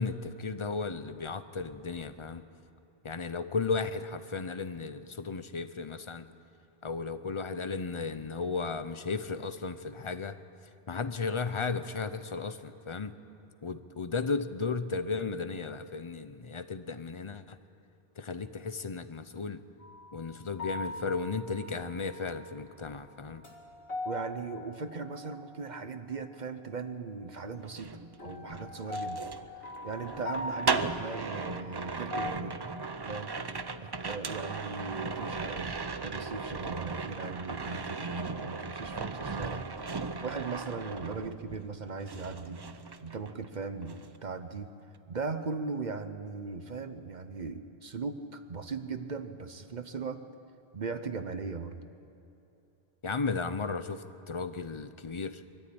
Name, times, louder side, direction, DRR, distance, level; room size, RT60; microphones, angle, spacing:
voice 1, 0.0-2.4 3.0-6.3 6.8-10.4 10.9-13.1 13.6-17.6 18.2-19.6 20.1-23.4 53.0-55.4, left 4 dB, 35° left, 11 dB, 0.7 m, -35 dB
sound 1, 19.8-20.1 20.6-22.4 22.9-25.8 28.2-32.3, left 2 dB, 65° left, 2.2 m, -41 dB
voice 2, 24.0-29.3 29.8-32.6 33.1-33.3 33.8-39.7 40.2-42.6 43.0-44.7 45.1-50.2 50.7-51.8, right 4 dB, 45° right, 10 dB, 0.9 m, -38 dB
sound 2, 27.6-41.8 42.1-43.5 43.8-44.2, right 4 dB, 30° right, 0.5 m, -37 dB
22.5 x 14.0 x 8.7 m, 3.0 s
omnidirectional pair, 1.1 m